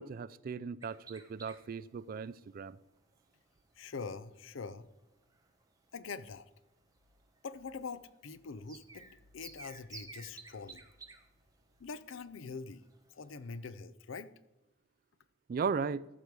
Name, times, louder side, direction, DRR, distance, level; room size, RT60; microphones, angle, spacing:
voice 1, 0.0-2.8 15.5-16.1, right 5 dB, 45° right, 0.3 m, -37 dB
sound 1, 0.8-13.7, right 4 dB, 20° right, 1.0 m, -57 dB
voice 2, 3.8-4.9 5.9-6.5 7.4-10.9 11.8-12.8 13.1-14.3, left 4 dB, 70° left, 0.5 m, -44 dB
14.0 x 5.3 x 4.7 m
head